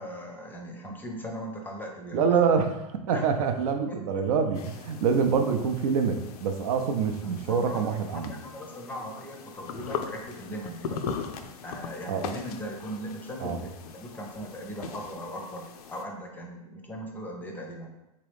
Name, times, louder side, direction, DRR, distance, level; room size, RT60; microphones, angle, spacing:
voice 1, 0.0-2.5 3.1-3.2 3.9-4.0 7.2-11.0 11.6-17.9, equal, 10° left, 1 dB, 0.5 m, -39 dB
voice 2, 2.1-2.7 3.1-8.3 12.1-12.2 13.4-13.6, right 6 dB, 65° right, 6 dB, 0.5 m, -25 dB
sound 1, 4.5-16.0, left 6 dB, 70° left, 0.5 m, -40 dB
3.7 x 2.9 x 3.4 m, 0.94 s
hypercardioid pair, 120°, 20 cm